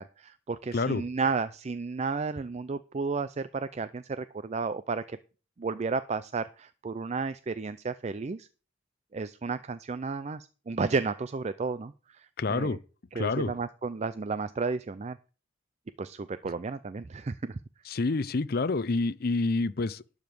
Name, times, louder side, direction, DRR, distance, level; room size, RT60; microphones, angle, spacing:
voice 1, 0.0-5.2 5.6-8.5 9.1-12.8 13.2-15.2 16.0-17.6, right 4 dB, 35° right, 0.4 m, -32 dB
voice 2, 0.7-1.1 12.4-12.8 13.1-13.5 17.9-20.2, left 3 dB, 50° left, 0.6 m, -28 dB
12.0 x 5.1 x 7.7 m
head